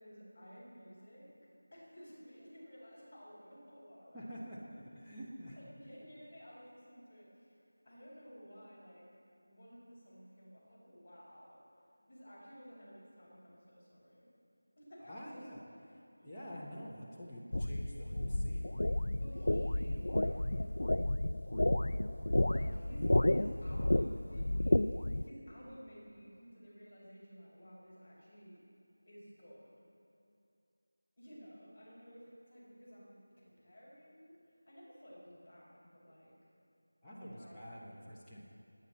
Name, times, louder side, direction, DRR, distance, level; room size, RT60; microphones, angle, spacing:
voice 1, 0.0-4.4 5.6-7.3 7.8-9.1 9.4-11.6 12.1-14.3 14.8-15.5 16.2-16.4 19.2-20.8 22.4-28.6 29.1-29.7 31.2-34.4 34.7-36.3 37.0-37.6 38.0-38.1 38.3-38.4, equal, 20° left, -12 dB, 4.5 m, -54 dB
voice 2, 4.1-5.7 15.1-15.6 15.9-18.7 37.0-38.4, equal, ahead, -16 dB, 1.1 m, -48 dB
sound 1, 17.5-25.2, left 1 dB, 65° left, 0.4 m, -31 dB
29.0 x 9.7 x 4.3 m, 2.7 s
figure-of-eight pair, 180°, 0 cm